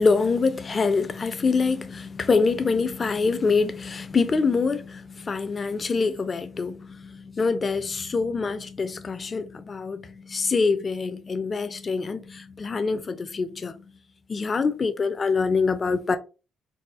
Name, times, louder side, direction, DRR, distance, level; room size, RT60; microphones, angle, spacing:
voice 1, 0.0-13.7 14.3-16.2, left 4 dB, 35° left, 0.5 m, -25 dB
4.1 x 2.0 x 2.4 m
cardioid pair, 90°, 0 cm